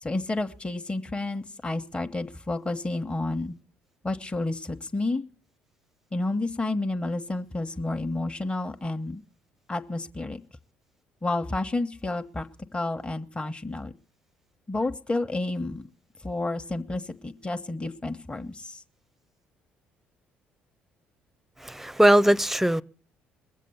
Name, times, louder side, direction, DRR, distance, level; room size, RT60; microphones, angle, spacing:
voice 1, 0.0-3.5 4.0-5.2 6.1-9.2 9.7-10.4 11.2-12.5 12.7-13.9 14.7-15.8 16.2-18.8, left 2 dB, 20° left, 1.2 m, -30 dB
voice 2, 21.6-22.8, right 1 dB, 5° right, 0.6 m, -20 dB
21.5 x 7.5 x 6.9 m
hypercardioid pair, 55°, 5 cm